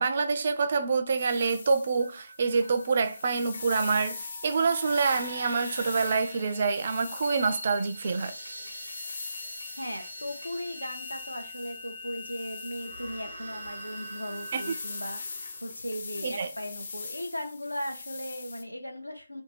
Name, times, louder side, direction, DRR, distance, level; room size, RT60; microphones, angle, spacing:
voice 1, 0.0-8.4 14.5-14.6 16.2-16.5, right 4 dB, 40° right, 0.3 m, -26 dB
sound 1, 1.2-18.6, left 4 dB, 40° left, 0.4 m, -43 dB
sound 2, 2.0-17.9, left 1 dB, 75° left, 1.0 m, -45 dB
sound 3, 3.3-16.9, right 1 dB, 70° right, 0.7 m, -47 dB
voice 2, 9.7-19.4, equal, 90° left, 0.6 m, -37 dB
2.6 x 2.1 x 3.1 m
figure-of-eight pair, 150°, 0 cm